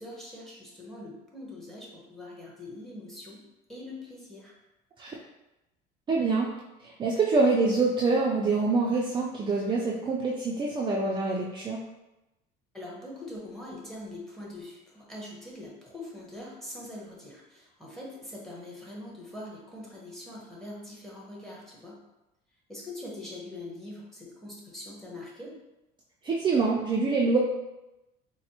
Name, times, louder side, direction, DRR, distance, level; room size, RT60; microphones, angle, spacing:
voice 1, 0.0-3.4 3.7-4.5 12.7-22.0 22.7-25.5, left 1 dB, ahead, -4 dB, 1.0 m, -43 dB
voice 2, 6.1-6.5 6.8-11.8 26.2-27.4, right 3 dB, 25° right, -3 dB, 0.4 m, -25 dB
4.1 x 2.0 x 2.8 m, 0.97 s
cardioid pair, 115°, 20 cm